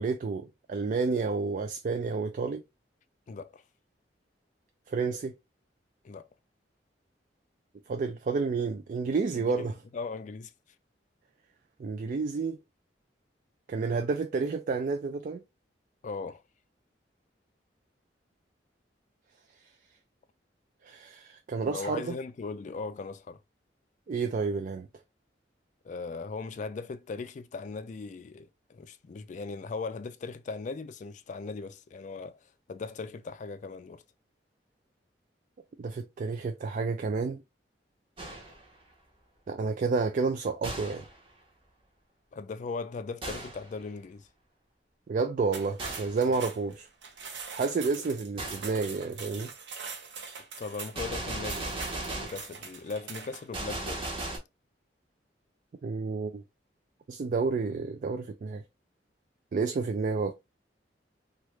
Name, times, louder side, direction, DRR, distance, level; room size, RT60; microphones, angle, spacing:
voice 1, 0.0-2.6 4.9-5.3 7.9-9.7 11.8-12.6 13.7-15.4 20.9-22.1 24.1-24.9 35.8-37.4 39.5-41.0 45.1-46.9 47.5-49.5 55.8-56.4 57.1-58.6 59.5-60.3, right 4 dB, 45° right, 0.3 m, -30 dB
voice 2, 3.3-3.6 6.0-6.3 9.3-10.5 16.0-16.4 21.6-23.4 25.8-32.4 32.7-34.0 42.3-44.3 46.3-46.4 50.6-51.8 52.1-54.1, left 4 dB, 45° left, 0.3 m, -38 dB
Gunshot gunfire, 38.2-38.7 40.6-41.2 43.2-43.7 45.8-46.2 48.4-48.7 50.9-52.5 53.5-54.4, right 2 dB, 30° right, 0.9 m, -36 dB
sound 1, 45.4-53.5, right 5 dB, 85° right, 0.8 m, -43 dB
3.0 x 2.4 x 3.1 m
head